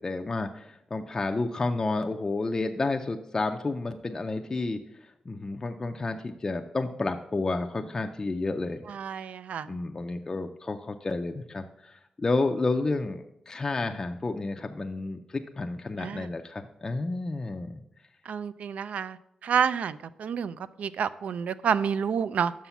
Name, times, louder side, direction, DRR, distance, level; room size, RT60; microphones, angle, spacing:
voice 1, 0.0-4.8 5.3-8.8 9.7-17.8, left 3 dB, 25° left, 5 dB, 0.4 m, -30 dB
voice 2, 8.9-9.8 16.0-16.3 18.3-22.5, right 7 dB, 75° right, 16 dB, 0.3 m, -29 dB
6.0 x 5.6 x 5.8 m, 0.82 s
wide cardioid pair, 155°, 2 cm